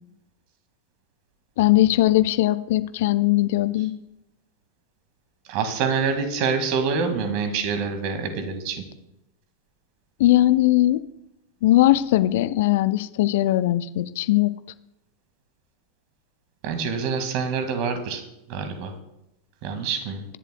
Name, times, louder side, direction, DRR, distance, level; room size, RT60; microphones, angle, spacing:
voice 1, 1.6-3.9 10.2-11.0 11.6-14.5, left 15 dB, 55° left, 14 dB, 0.5 m, -19 dB
voice 2, 5.5-8.8 16.6-18.2 18.5-18.9 19.6-20.2, right 5 dB, 45° right, 7 dB, 1.9 m, -26 dB
22.5 x 11.0 x 2.3 m, 0.88 s
figure-of-eight pair, 90°, 0 cm